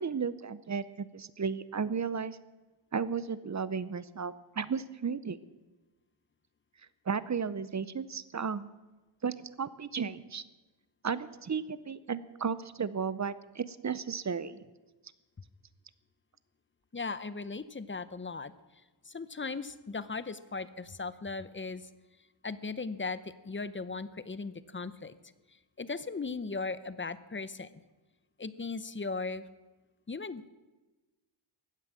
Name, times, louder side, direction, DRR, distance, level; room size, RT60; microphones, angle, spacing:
voice 1, 0.0-2.4 2.9-5.4 7.1-8.7 9.2-10.4 11.0-14.6, right 6 dB, 35° right, 16 dB, 0.7 m, -34 dB
voice 2, 16.9-18.5 19.0-21.9 22.4-25.1 25.8-27.8 28.4-29.4 30.1-30.5, left 4 dB, 25° left, 15 dB, 0.7 m, -37 dB
15.5 x 9.6 x 7.6 m, 1.2 s
wide cardioid pair, 100°, 49 cm